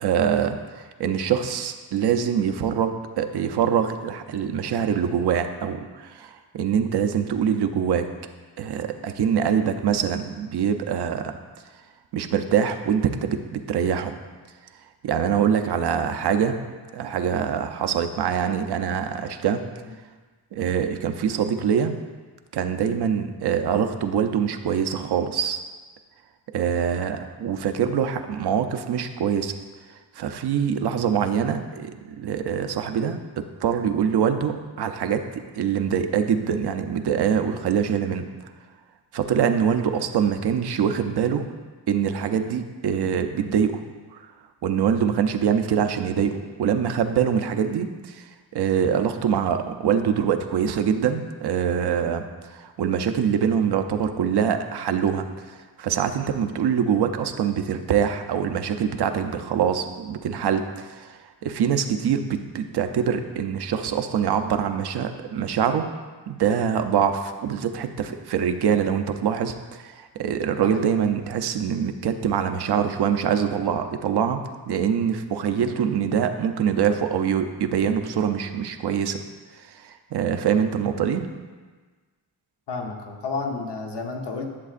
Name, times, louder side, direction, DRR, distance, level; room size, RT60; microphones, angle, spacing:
voice 1, 0.0-8.1 8.6-11.3 12.1-14.1 15.0-16.6 16.9-19.6 20.5-22.0 22.5-25.6 26.5-29.5 30.1-31.9 32.2-38.3 39.1-41.4 41.9-43.8 44.1-44.2 44.6-55.3 55.8-65.9 66.3-74.4 74.7-79.2 79.6-81.3, right 8 dB, 70° right, 7 dB, 0.6 m, -24 dB
voice 2, 70.6-70.9 82.7-84.4, left 4 dB, 80° left, 1 dB, 1.1 m, -31 dB
11.0 x 7.4 x 2.5 m, 1.4 s
wide cardioid pair, 160°, 41 cm